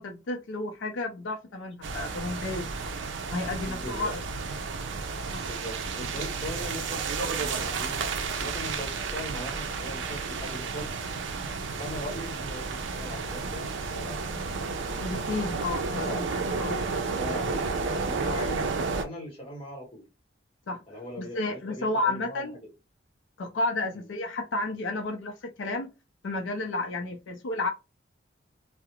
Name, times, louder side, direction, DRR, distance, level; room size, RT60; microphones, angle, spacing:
voice 1, 0.0-2.7 3.3-4.2 5.3-5.4 15.0-16.8 20.7-20.8 21.2-22.6 23.4-25.9 26.2-27.7, left 2 dB, 80° left, 0.5 m, -32 dB
sound 1, 1.8-19.0, right 4 dB, 75° right, 0.4 m, -32 dB
voice 2, 3.6-4.1 5.4-11.0 11.8-14.4 15.6-16.3 16.6-20.1 20.9-22.5 23.9-24.1, left 1 dB, 30° left, 1.1 m, -40 dB
2.3 x 2.0 x 2.9 m
head